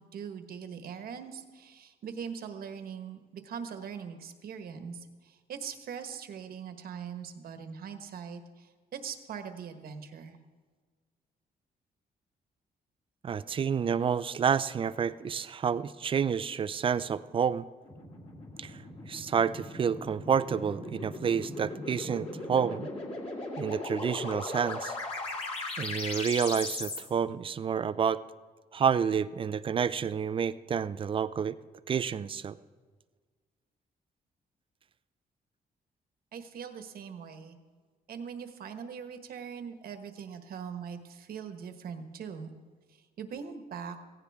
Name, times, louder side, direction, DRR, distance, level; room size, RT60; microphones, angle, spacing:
voice 1, 0.0-10.4 36.3-37.6 38.1-42.5 42.9-44.0, right 7 dB, 70° right, 7 dB, 1.3 m, -41 dB
voice 2, 13.2-17.6 18.6-18.8 19.1-22.9 23.6-24.9 25.8-28.2 28.7-31.6 31.9-32.6, right 7 dB, 35° right, 15 dB, 0.4 m, -29 dB
sound 1, 17.8-27.0, left 2 dB, 40° left, 2.7 m, -38 dB
16.5 x 16.0 x 3.6 m, 1.5 s
cardioid pair, 145°, 16 cm